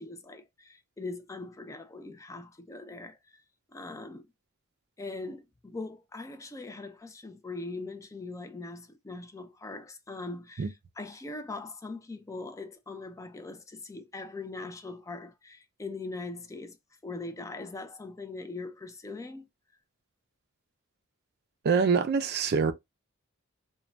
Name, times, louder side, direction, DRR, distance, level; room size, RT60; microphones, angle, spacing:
voice 1, 0.0-3.4 3.7-4.3 5.0-16.8 17.0-19.5, left 3 dB, 15° left, 0.4 m, -41 dB
voice 2, 21.6-22.7, right 5 dB, 50° right, 0.4 m, -25 dB
2.6 x 2.2 x 3.1 m
head